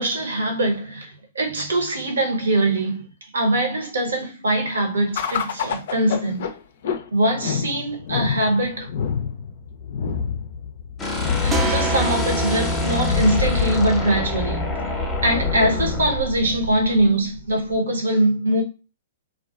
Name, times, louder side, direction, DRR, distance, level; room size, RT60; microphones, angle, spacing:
voice 1, 0.0-3.0 3.3-6.5 7.1-8.9 11.4-14.7 15.2-18.6, right 1 dB, 75° right, 0.9 m, -22 dB
sound 1, 5.1-17.8, left 7 dB, 60° left, 0.4 m, -28 dB
sound 2, 11.0-16.2, left 3 dB, 15° left, 0.7 m, -27 dB
sound 3, 11.5-17.0, right 3 dB, 15° right, 0.5 m, -30 dB
2.3 x 2.2 x 2.4 m
figure-of-eight pair, 115°, 0 cm